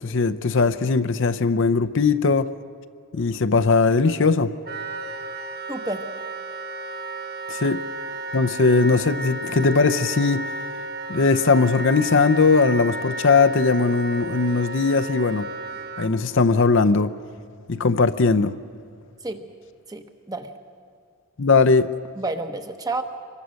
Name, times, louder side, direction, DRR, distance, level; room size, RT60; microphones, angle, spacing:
voice 1, 0.0-2.5 3.1-4.5 7.5-7.8 8.3-10.5 11.1-15.5 16.0-17.1 17.7-18.6 21.4-21.9, left 4 dB, 55° left, 0.6 m, -19 dB
Wind instrument woodwind instrument, 4.6-16.1, right 2 dB, 45° right, 1.1 m, -33 dB
voice 2, 5.7-6.0 19.2-19.4 19.9-20.5 22.2-23.0, right 2 dB, 15° right, 1.1 m, -30 dB
25.5 x 22.5 x 6.4 m
head